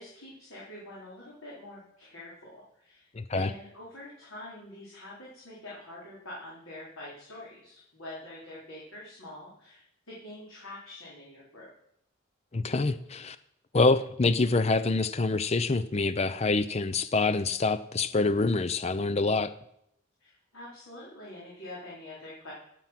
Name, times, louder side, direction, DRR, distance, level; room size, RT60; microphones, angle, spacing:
voice 1, 0.0-11.7 20.2-22.5, left 1 dB, 85° left, -6 dB, 4.0 m, -45 dB
voice 2, 3.1-3.5 12.5-13.4 13.7-19.5, left 3 dB, 30° left, 13 dB, 0.5 m, -26 dB
16.5 x 7.6 x 5.9 m, 0.75 s
head